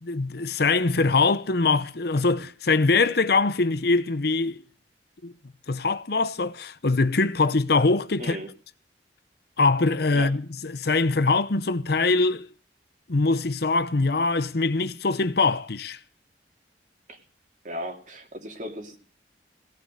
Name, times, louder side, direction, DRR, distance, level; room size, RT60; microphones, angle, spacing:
voice 1, 0.0-4.6 5.2-5.3 5.7-8.4 9.6-12.5 13.1-16.0, left 3 dB, 60° left, 0.8 m, -23 dB
voice 2, 8.2-8.5 10.1-10.3 17.1-17.2 17.6-19.0, equal, 45° right, 2.6 m, -36 dB
17.5 x 9.1 x 6.5 m
head